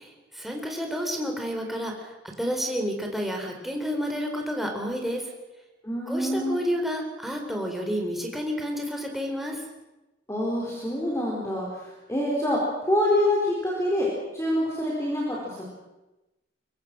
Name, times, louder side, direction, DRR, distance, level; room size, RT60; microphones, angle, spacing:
voice 1, 0.0-5.3 6.1-9.6, equal, ahead, 1 dB, 4.2 m, -30 dB
voice 2, 5.8-6.6 10.3-14.1 14.3-15.7, left 1 dB, 15° left, -3 dB, 4.7 m, -26 dB
24.0 x 23.5 x 6.3 m, 1.0 s
head